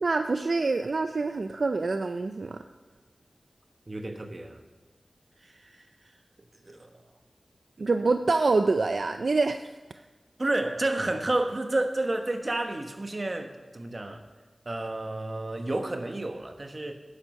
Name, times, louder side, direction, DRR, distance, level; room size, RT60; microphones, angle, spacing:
voice 1, 0.0-2.6 7.8-9.7, right 3 dB, 70° right, 8 dB, 0.4 m, -26 dB
voice 2, 3.9-4.6 5.4-5.8 6.6-6.9 10.4-14.2 14.6-17.0, right 2 dB, 45° right, 6 dB, 1.2 m, -30 dB
11.5 x 9.9 x 5.4 m, 1.2 s
wide cardioid pair, 60°, 0 cm